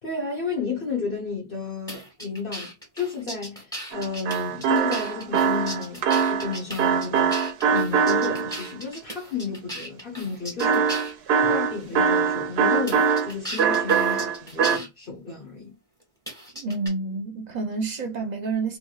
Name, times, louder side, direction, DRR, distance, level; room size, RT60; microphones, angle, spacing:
voice 1, 0.0-7.4 7.7-10.9 11.4-15.7, left 4 dB, 60° left, 1.2 m, -32 dB
sound 1, 1.9-11.2 11.9-12.0 12.9-14.9 16.3-16.9, equal, 5° left, 1.6 m, -37 dB
sound 2, 3.9-8.7 10.6-13.3 13.6-14.8, right 6 dB, 80° right, 0.8 m, -22 dB
voice 2, 16.5-18.8, right 3 dB, 45° right, 0.8 m, -29 dB
3.3 x 3.0 x 2.3 m
omnidirectional pair, 1.0 m